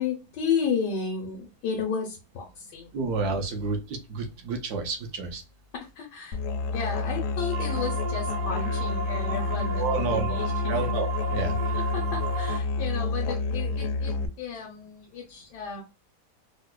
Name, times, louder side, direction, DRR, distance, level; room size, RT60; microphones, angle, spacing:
voice 1, 0.0-2.9 5.7-6.4 6.7-10.9 11.7-15.8, left 6 dB, 85° left, -1 dB, 1.3 m, -33 dB
voice 2, 2.9-5.4 9.7-10.4 10.7-11.8, right 4 dB, 70° right, 3 dB, 1.3 m, -30 dB
Musical instrument, 6.3-14.3, left 3 dB, 70° left, 0.8 m, -29 dB
sound 1, 7.5-12.6, right 4 dB, 90° right, 1.4 m, -34 dB
4.4 x 2.1 x 2.2 m, 0.29 s
omnidirectional pair, 1.8 m